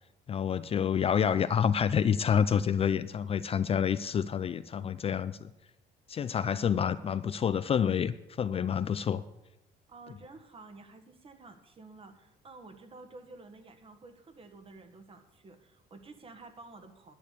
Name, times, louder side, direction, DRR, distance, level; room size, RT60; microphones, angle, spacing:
voice 1, 0.3-5.5 6.1-9.2, left 8 dB, 35° left, 13 dB, 0.4 m, -28 dB
voice 2, 9.9-17.1, right 3 dB, 35° right, 8 dB, 1.5 m, -51 dB
11.0 x 6.2 x 8.4 m, 0.92 s
cardioid pair, 110°, 17 cm